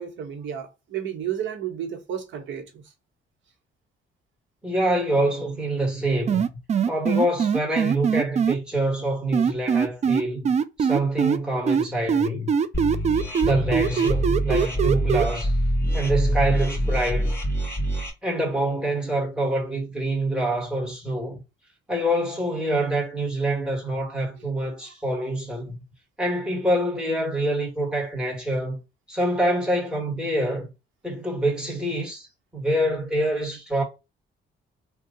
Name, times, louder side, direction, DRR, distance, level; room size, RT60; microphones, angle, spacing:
voice 1, 0.0-2.8, right 9 dB, 75° right, 1.1 m, -32 dB
voice 2, 4.6-6.5 6.9-10.5 10.8-12.5 13.4-15.5 15.9-17.4 18.2-21.4 21.9-25.8 26.2-28.8 29.1-30.7 31.0-32.3 32.5-33.8, right 1 dB, 5° right, 1.6 m, -26 dB
sound 1, 6.3-8.5 9.3-11.4 11.7-15.2, right 7 dB, 35° right, 0.4 m, -21 dB
sound 2, 12.7-18.1, right 1 dB, 10° left, 1.5 m, -25 dB
2.7 x 2.3 x 3.7 m
cardioid pair, 90°, 20 cm